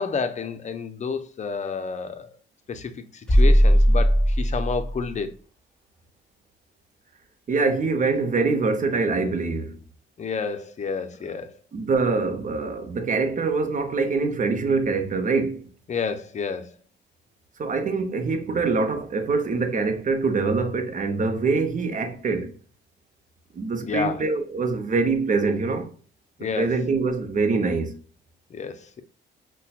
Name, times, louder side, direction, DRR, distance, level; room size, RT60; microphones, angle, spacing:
voice 1, 0.0-2.3 2.7-5.3 10.2-11.5 15.9-16.7 23.8-24.2 26.4-26.7 28.5-29.0, left 5 dB, 35° left, 0.6 m, -30 dB
sound 1, 3.3-5.1, equal, 5° left, 1.6 m, -18 dB
voice 2, 7.5-9.8 11.7-15.7 17.6-22.5 23.5-25.9 26.5-27.9, right 4 dB, 40° right, 0.8 m, -24 dB
5.5 x 2.2 x 2.4 m
cardioid pair, 90°, 20 cm